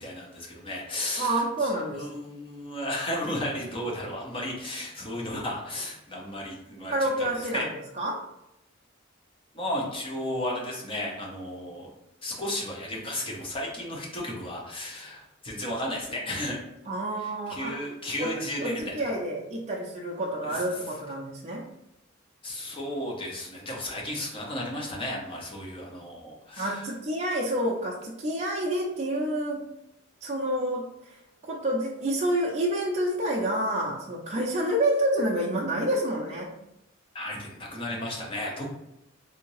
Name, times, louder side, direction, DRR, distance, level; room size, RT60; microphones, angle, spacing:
voice 1, 0.0-7.7 9.5-11.9 12.2-16.6 17.2-18.9 20.4-20.6 22.4-26.9 37.1-38.7, left 1 dB, 25° left, -2 dB, 0.8 m, -34 dB
voice 2, 1.2-2.2 6.9-8.2 16.9-17.8 18.2-18.3 18.6-21.6 26.6-29.7 30.2-31.2 31.5-36.6, right 1 dB, 35° right, -2 dB, 0.5 m, -28 dB
3.5 x 2.7 x 3.1 m, 0.88 s
head